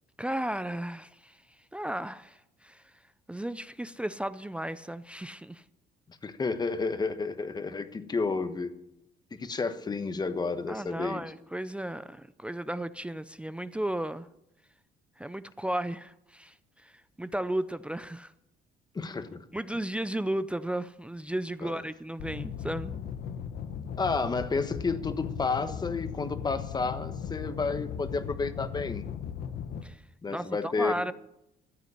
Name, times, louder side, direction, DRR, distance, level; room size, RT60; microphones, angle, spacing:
voice 1, 0.2-1.4 1.7-2.8 3.3-5.6 10.7-14.3 15.2-18.3 19.5-22.9 29.8-30.0 30.3-31.1, right 1 dB, 5° right, 14 dB, 0.5 m, -34 dB
voice 2, 6.2-8.7 9.3-11.2 18.9-19.4 21.6-21.8 24.0-29.1 30.2-31.1, left 4 dB, 25° left, 10 dB, 1.3 m, -31 dB
sound 1, 22.2-29.8, left 8 dB, 65° left, 1.2 m, -37 dB
14.0 x 8.2 x 9.8 m, 0.84 s
cardioid pair, 110°, 17 cm